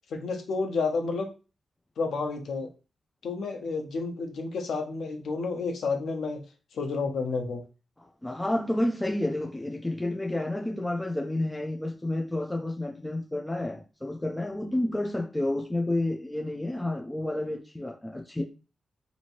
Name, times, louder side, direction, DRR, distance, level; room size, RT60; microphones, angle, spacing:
voice 1, 0.1-1.3 2.0-2.7 3.2-6.4 6.7-7.6, left 4 dB, 85° left, 0.8 m, -30 dB
voice 2, 8.2-18.4, left 1 dB, 10° left, 0.5 m, -30 dB
2.9 x 2.7 x 4.4 m
wide cardioid pair, 125°, 0 cm